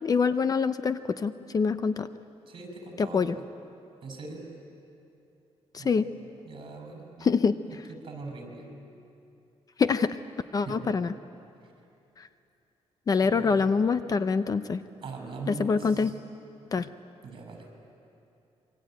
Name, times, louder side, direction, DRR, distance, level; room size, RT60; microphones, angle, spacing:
voice 1, 0.0-2.1 3.0-3.4 5.7-6.1 7.2-7.5 9.8-10.2 10.5-11.1 13.1-14.8 15.5-16.1 16.7-16.9, left 5 dB, 35° left, 12 dB, 0.6 m, -25 dB
voice 2, 2.5-3.4 4.0-4.4 5.8-6.1 6.4-7.3 7.7-8.7 10.6-10.9 13.2-13.6 15.0-16.1 17.2-17.9, right 3 dB, 45° right, 3 dB, 6.5 m, -41 dB
27.0 x 23.5 x 9.2 m, 2.7 s
cardioid pair, 150°, 11 cm